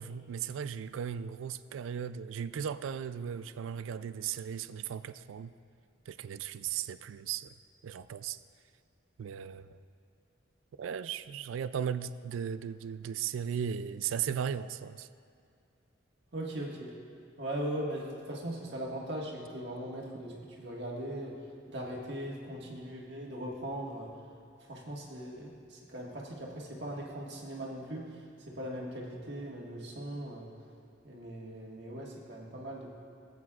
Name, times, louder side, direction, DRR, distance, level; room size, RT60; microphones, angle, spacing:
voice 1, 0.0-5.5 6.1-7.5 7.8-8.4 9.2-9.8 10.8-15.1, right 8 dB, 80° right, 14 dB, 0.3 m, -36 dB
voice 2, 16.3-16.9 17.4-21.4 21.7-24.1 24.7-28.2 28.5-30.5 31.0-33.0, right 1 dB, 60° right, -3 dB, 1.6 m, -39 dB
19.0 x 8.2 x 2.4 m, 2.4 s
head